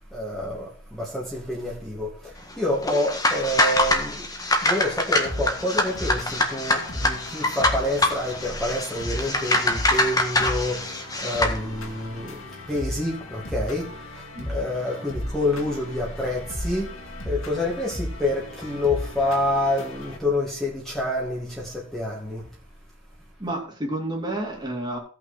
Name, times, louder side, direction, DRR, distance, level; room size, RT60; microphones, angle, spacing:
voice 1, 0.1-4.3 4.6-22.5, left 1 dB, ahead, 2.1 m, -28 dB
sound 1, 2.8-11.6, left 2 dB, 20° left, 1.6 m, -24 dB
sound 2, 5.2-20.2, left 1 dB, 90° left, 2.5 m, -35 dB
voice 2, 23.4-25.0, right 1 dB, 20° right, 2.6 m, -30 dB
16.5 x 6.0 x 4.3 m
head